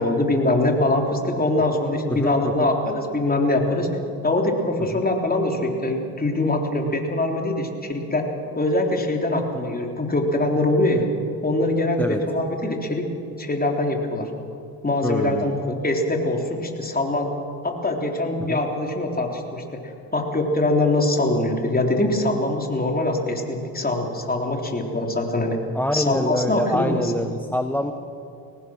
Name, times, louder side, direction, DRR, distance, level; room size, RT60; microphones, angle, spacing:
voice 1, 0.0-3.9 4.2-8.3 8.6-11.1 11.4-13.1 13.4-14.3 14.8-17.3 17.6-25.6 25.9-27.2, left 2 dB, 20° left, 2 dB, 3.6 m, -23 dB
voice 2, 2.1-2.7 4.9-5.0 12.0-12.2 15.0-15.6 18.5-18.6 25.7-27.9, left 1 dB, 5° left, 8 dB, 1.0 m, -25 dB
23.0 x 18.5 x 6.4 m, 2.5 s
supercardioid pair, 80°, 46 cm